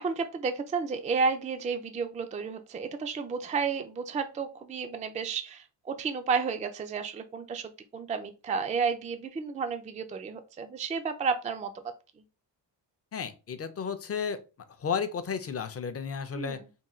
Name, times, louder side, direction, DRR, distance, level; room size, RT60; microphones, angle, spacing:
voice 1, 0.0-11.7 16.4-16.6, right 5 dB, 20° right, 7 dB, 0.3 m, -32 dB
voice 2, 13.1-14.4 14.8-16.6, left 6 dB, 35° left, 10 dB, 0.5 m, -33 dB
3.6 x 2.2 x 4.2 m, 0.30 s
wide cardioid pair, 150°, 43 cm